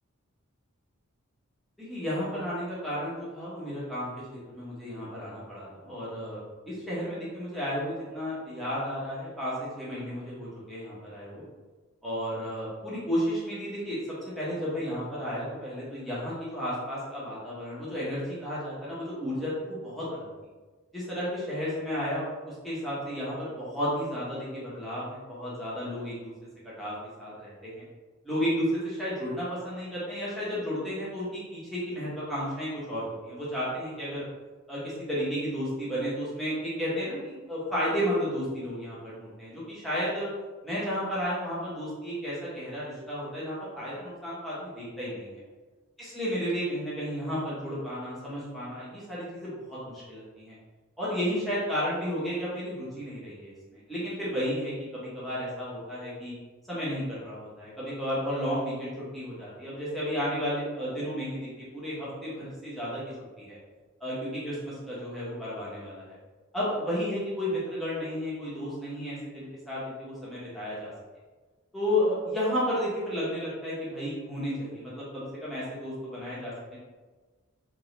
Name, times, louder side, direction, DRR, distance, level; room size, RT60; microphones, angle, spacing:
voice 1, 1.8-6.4 6.7-11.5 12.0-20.3 20.9-26.3 26.6-27.8 28.2-34.3 34.7-40.3 40.6-45.3 46.0-50.5 51.0-56.3 56.7-63.0 63.4-63.6 64.0-66.2 66.5-70.9 71.7-76.8, equal, ahead, -10 dB, 1.3 m, -33 dB
3.7 x 3.1 x 3.3 m, 1.3 s
head